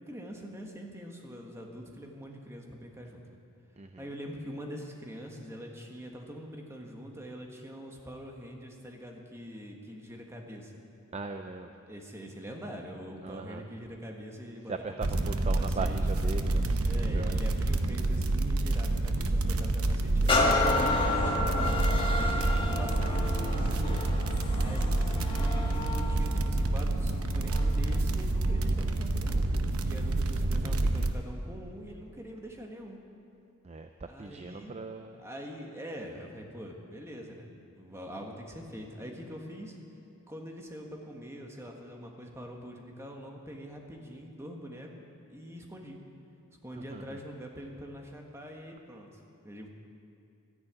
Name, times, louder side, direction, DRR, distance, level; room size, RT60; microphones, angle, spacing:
voice 1, 0.1-3.2 4.0-10.8 11.9-14.7 15.0-15.1 15.6-16.0 16.8-20.4 21.0-21.9 22.1-24.1 24.6-33.0 34.1-39.8 40.3-44.9 45.3-46.0 46.6-49.7, equal, 15° right, 1 dB, 1.5 m, -44 dB
voice 2, 11.1-11.7 13.2-13.7 14.7-17.4 30.6-31.1 33.6-35.2 46.7-47.2, right 3 dB, 30° right, 7 dB, 0.4 m, -39 dB
sound 1, 15.0-31.1, right 2 dB, 90° right, 0.9 m, -28 dB
sound 2, 20.3-27.9 28.5-28.6, left 2 dB, 25° left, 1.4 m, -31 dB
12.5 x 10.5 x 8.8 m, 2.5 s
head